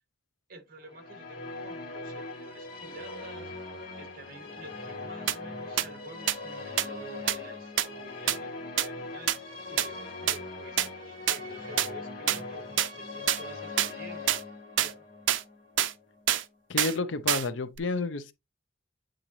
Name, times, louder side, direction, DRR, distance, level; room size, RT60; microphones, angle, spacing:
voice 1, 0.5-3.6 4.0-14.3 14.8-15.1, right 2 dB, 50° right, 2.0 m, -49 dB
Musical instrument, 0.9-16.3, left 3 dB, 55° left, 2.4 m, -41 dB
sound 1, 5.3-5.4 5.8-5.9 6.3-6.4 6.8-6.9 7.3-7.4 7.8-7.9 8.3-8.4 8.8-8.9 9.3-9.4 9.8-9.9 10.3-10.4 10.8-10.9 11.3-11.4 11.8-11.9 12.3-12.4 12.8-12.9 13.3-13.4 13.8-13.9 14.3-14.4 14.8-14.9 15.3-15.4 15.8-15.9 16.3-16.4 16.8-16.9 17.3-17.5 17.8-17.9, right 11 dB, 90° right, 0.5 m, -25 dB
voice 2, 16.7-18.3, left 3 dB, 90° left, 0.7 m, -30 dB
8.7 x 3.8 x 3.2 m
head